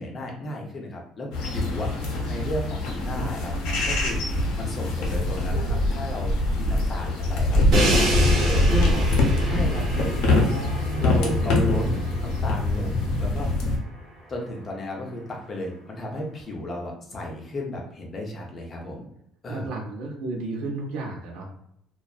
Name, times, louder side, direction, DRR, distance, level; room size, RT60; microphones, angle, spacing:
voice 1, 0.0-1.9 2.3-6.3 6.6-8.9 9.4-10.5 11.0-11.9 12.2-13.7 14.3-19.1 19.4-19.7, left 1 dB, 20° left, 0 dB, 0.5 m, -34 dB
sound 1, 1.3-13.8, left 2 dB, 75° left, 0.7 m, -24 dB
Crash cymbal, 7.7-13.7, right 1 dB, 45° right, 0.9 m, -29 dB
voice 2, 8.7-9.1 10.3-11.5 19.5-21.5, right 3 dB, 70° right, -1 dB, 0.5 m, -32 dB
2.6 x 2.2 x 2.3 m, 0.74 s
cardioid pair, 175°, 0 cm